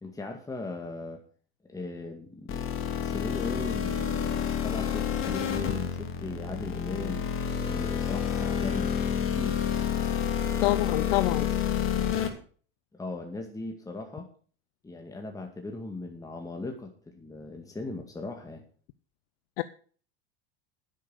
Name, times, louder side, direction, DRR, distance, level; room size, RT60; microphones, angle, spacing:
voice 1, 0.0-1.2 1.7-2.5 3.0-7.3 7.7-8.9 9.3-9.6 12.9-14.3 14.8-18.6, left 2 dB, 10° left, 3 dB, 2.0 m, -38 dB
sound 1, 2.5-12.3, left 8 dB, 45° left, 2.8 m, -29 dB
voice 2, 10.6-11.5 19.6-19.7, left 18 dB, 70° left, 14 dB, 0.7 m, -26 dB
10.5 x 8.5 x 6.6 m, 0.43 s
hypercardioid pair, 100°, 31 cm